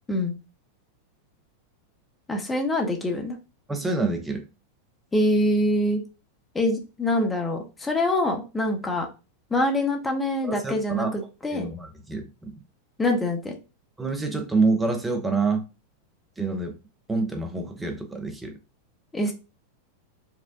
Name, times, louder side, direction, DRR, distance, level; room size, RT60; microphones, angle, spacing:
voice 1, 2.3-3.4 5.1-6.0 6.5-9.1 9.5-11.7 13.0-13.6 19.1-19.3, left 1 dB, 10° left, 0.8 m, -25 dB
voice 2, 3.7-4.5 10.4-11.2 11.5-12.5 14.0-15.6 16.4-16.8 17.1-18.6, right 3 dB, 10° right, 0.6 m, -27 dB
4.6 x 2.2 x 2.4 m
figure-of-eight pair, 90°, 0 cm